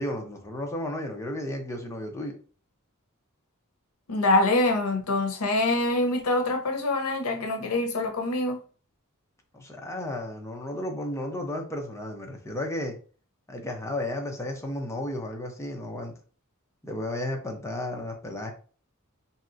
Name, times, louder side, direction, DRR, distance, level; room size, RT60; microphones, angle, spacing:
voice 1, 0.0-2.4 9.5-13.0 13.5-16.1 16.8-18.5, left 1 dB, 15° left, 0.6 m, -33 dB
voice 2, 4.1-8.6, left 2 dB, 75° left, 0.7 m, -25 dB
3.1 x 2.8 x 2.5 m
head